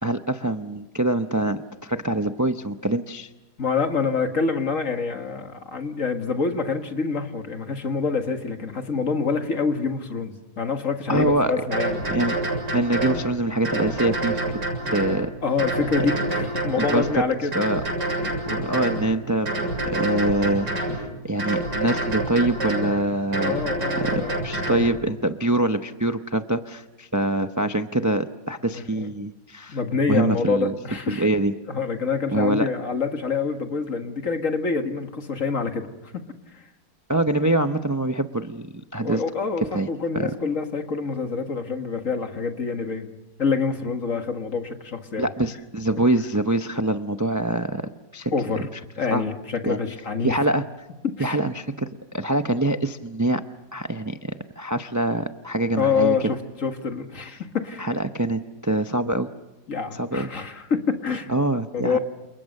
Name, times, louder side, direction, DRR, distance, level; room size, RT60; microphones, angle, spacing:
voice 1, 0.0-3.3 11.1-11.5 12.1-12.4 12.7-14.6 14.9-15.3 16.8-17.2 17.5-17.8 18.4-23.6 24.0-29.8 30.1-30.7 31.1-31.5 32.3-32.7 37.1-39.2 39.7-39.9 40.1-40.3 45.2-48.3 49.1-49.2 49.6-49.8 50.2-50.6 51.2-53.4 53.7-56.2 57.8-59.3 59.9-60.3 61.3-62.0, right 1 dB, 20° right, 8 dB, 0.5 m, -24 dB
voice 2, 3.6-12.0 15.4-17.6 18.2-18.5 23.4-24.4 28.7-29.1 29.7-31.3 31.7-36.2 36.5-36.7 37.4-37.5 39.0-43.1 43.4-45.3 48.3-48.7 49.0-50.4 51.2-51.4 55.8-57.9 59.7-61.3 61.7-62.0, left 5 dB, 50° left, 6 dB, 2.2 m, -26 dB
sound 1, 11.2-11.3 11.7-13.2 13.6-15.2 15.6-17.1 17.5-19.0 19.5-21.0 21.4-22.9 23.3-24.9, right 2 dB, 85° right, 7.8 m, -27 dB
29.5 x 28.5 x 6.6 m, 1.0 s
omnidirectional pair, 1.8 m